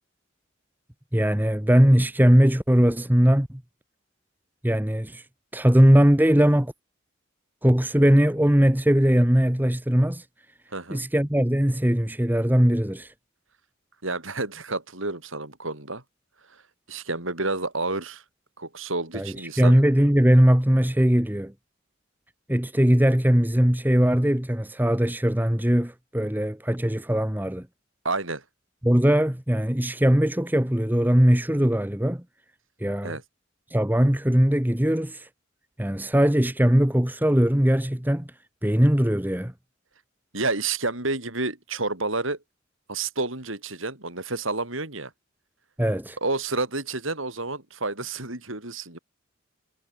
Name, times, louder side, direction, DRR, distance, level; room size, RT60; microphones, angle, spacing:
voice 1, 1.1-3.6 4.6-5.2 5.5-6.7 7.6-10.2 10.9-13.1 19.1-21.5 22.5-27.7 28.8-32.2 32.8-33.2 33.7-35.3 35.8-38.3 38.6-39.5 45.8-46.2, equal, 10° right, 1.2 m, -20 dB
voice 2, 10.7-11.0 14.0-16.0 16.9-18.2 18.6-19.8 28.0-28.4 33.0-33.2 40.3-42.4 42.9-45.1 46.2-49.0, right 3 dB, 75° right, 6.8 m, -29 dB
head